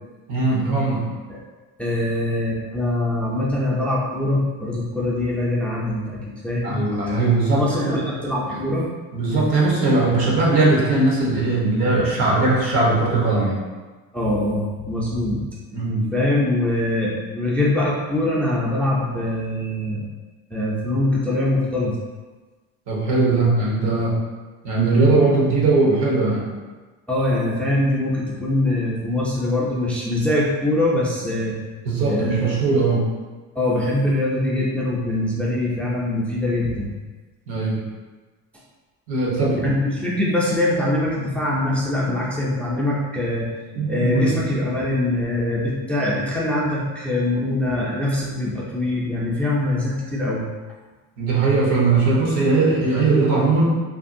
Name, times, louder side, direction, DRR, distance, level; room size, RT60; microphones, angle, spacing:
voice 1, 0.3-1.0 6.6-8.0 8.5-8.6 9.1-13.6 15.7-16.1 22.9-24.2 24.6-26.4 31.8-33.0 37.5-37.8 39.1-39.7 43.7-44.3 51.2-53.6, right 3 dB, 75° right, -4 dB, 1.0 m, -19 dB
voice 2, 1.8-6.2 6.4-6.8 7.5-8.9 9.3-9.9 14.1-15.5 16.1-20.1 20.5-22.0 23.4-23.5 27.1-31.6 32.0-32.5 33.6-36.9 39.6-43.5 43.9-50.5, left 1 dB, 5° left, -5 dB, 0.4 m, -23 dB
2.8 x 2.6 x 2.5 m, 1.3 s
cardioid pair, 120°, 35 cm